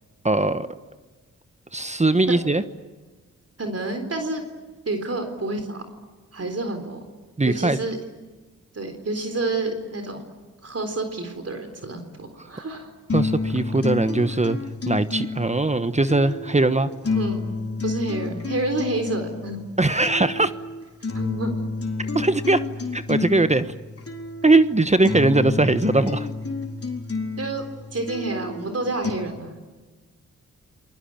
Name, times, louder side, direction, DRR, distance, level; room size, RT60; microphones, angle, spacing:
voice 1, 0.2-0.7 1.7-2.6 7.4-7.8 13.1-14.6 14.9-16.9 19.8-20.5 22.1-22.6 22.9-23.7 24.4-26.3, right 2 dB, 20° right, 12 dB, 1.2 m, -20 dB
voice 2, 3.6-4.4 4.9-5.8 6.3-7.0 7.4-8.0 8.7-10.3 10.6-12.9 17.1-17.5 17.8-19.7 21.1-21.6 27.4-27.6 27.9-29.6, right 2 dB, 50° right, 5 dB, 3.9 m, -29 dB
sound 1, 13.1-29.1, left 3 dB, 45° left, 4.0 m, -30 dB
28.5 x 21.0 x 8.9 m, 1.3 s
cardioid pair, 50°, 32 cm